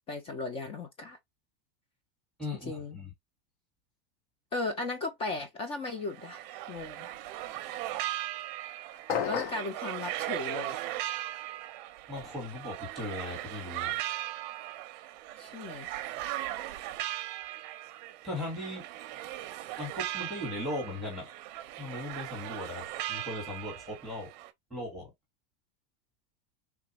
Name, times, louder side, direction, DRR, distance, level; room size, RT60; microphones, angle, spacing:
voice 1, 0.1-1.2 2.6-3.0 4.5-7.1 9.3-10.8 15.4-15.9, left 3 dB, 20° left, 0.3 m, -36 dB
voice 2, 2.4-3.1 12.1-14.0 18.2-18.9 19.8-21.3 21.8-24.3 24.7-25.1, left 1 dB, ahead, 1.3 m, -38 dB
sound 1, 5.9-24.5, right 14 dB, 45° right, 0.5 m, -38 dB
sound 2, 9.1-9.7, left 8 dB, 50° left, 0.7 m, -31 dB
3.4 x 2.3 x 2.8 m
supercardioid pair, 165°, 31 cm